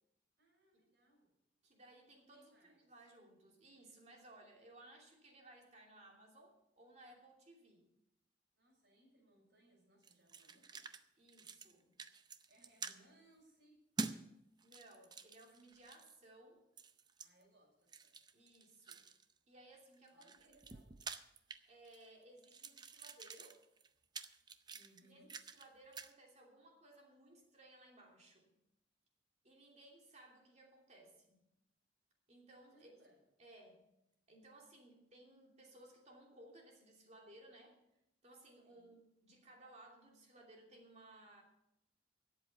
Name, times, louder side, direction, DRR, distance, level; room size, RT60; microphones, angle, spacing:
voice 1, 0.4-1.3 2.3-3.1 8.6-10.9 12.5-14.3 17.2-18.2 20.1-20.9 24.7-25.3 32.7-33.2 38.6-38.9, right 1 dB, 65° right, -2 dB, 6.4 m, -69 dB
voice 2, 1.6-7.9 11.2-11.9 14.6-16.6 18.3-19.0 19.5-20.5 21.7-23.6 25.1-25.2 25.5-28.5 29.4-31.4 32.3-32.9 33.4-33.8 34.3-37.8 38.2-41.4, right 1 dB, 40° right, 0 dB, 2.9 m, -61 dB
sound 1, 10.0-11.0 11.3-11.7 12.0-13.0 14.0-14.2 14.6-16.2 16.8-17.3 17.9-19.3 19.9-22.1 22.4-25.7 25.9-26.1, right 4 dB, 25° right, 0.5 m, -48 dB
12.5 x 8.4 x 6.9 m, 0.84 s
head